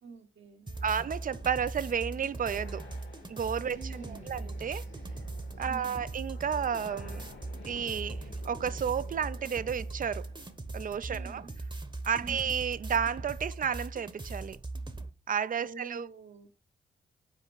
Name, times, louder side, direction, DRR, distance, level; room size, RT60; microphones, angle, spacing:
voice 1, 0.0-1.1 3.7-4.4 5.6-6.1 11.1-11.5 12.2-12.5 15.6-16.5, right 5 dB, 65° right, 1.2 m, -47 dB
sound 1, 0.7-10.5, left 4 dB, 65° left, 1.6 m, -53 dB
sound 2, 0.7-15.1, right 2 dB, 20° right, 0.9 m, -40 dB
voice 2, 0.8-2.8 3.3-4.8 5.6-7.3 7.7-10.3 10.7-11.5 12.0-14.6 15.3-16.1, right 7 dB, 40° right, 0.5 m, -32 dB
sound 3, 1.0-12.2, right 3 dB, 80° right, 3.2 m, -60 dB
5.7 x 4.5 x 4.6 m
supercardioid pair, 40°, 21 cm